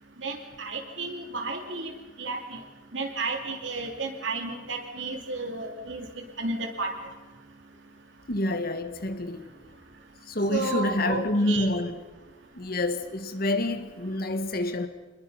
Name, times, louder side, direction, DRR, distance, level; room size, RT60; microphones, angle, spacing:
voice 1, 0.2-1.9 2.2-2.4 2.9-6.0 6.4-6.9 10.5-11.7, right 3 dB, 70° right, 3.0 m, -32 dB
voice 2, 8.3-9.5 10.3-12.0 12.5-14.9, left 1 dB, 50° left, 1.7 m, -27 dB
26.5 x 21.0 x 5.8 m
head